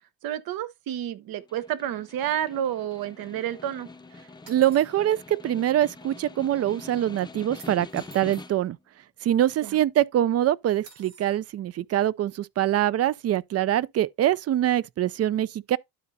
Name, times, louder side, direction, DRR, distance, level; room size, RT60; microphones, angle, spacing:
voice 1, 0.2-3.9 9.6-9.8, right 11 dB, 65° right, 0.9 m, -30 dB
Snare drum, 1.3-8.8, left 3 dB, 10° left, 0.6 m, -45 dB
voice 2, 4.5-8.8 9.2-15.8, right 12 dB, 40° right, 0.4 m, -24 dB
sound 1, 4.5-5.0 7.6-8.5 10.8-11.3, right 5 dB, 85° right, 2.4 m, -50 dB
12.0 x 4.1 x 2.6 m
cardioid pair, 95°, 38 cm